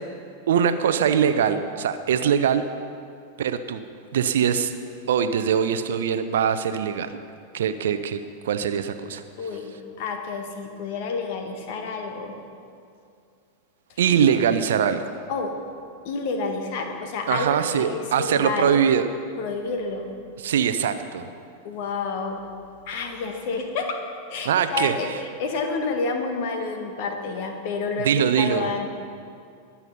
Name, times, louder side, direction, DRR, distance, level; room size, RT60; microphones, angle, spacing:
voice 1, 0.5-2.6 3.4-3.8 4.1-4.7 5.1-7.2 7.5-9.2 14.0-15.0 17.3-19.1 20.4-21.3 24.5-24.9 28.0-28.7, right 8 dB, 60° right, 11 dB, 0.7 m, -22 dB
voice 2, 9.4-12.4 13.9-14.0 15.3-15.5 16.0-18.8 19.4-20.2 21.6-22.5 22.9-24.0 24.3-28.9, left 4 dB, 50° left, 4 dB, 1.7 m, -29 dB
21.5 x 7.2 x 5.5 m, 2.4 s
figure-of-eight pair, 90°, 0 cm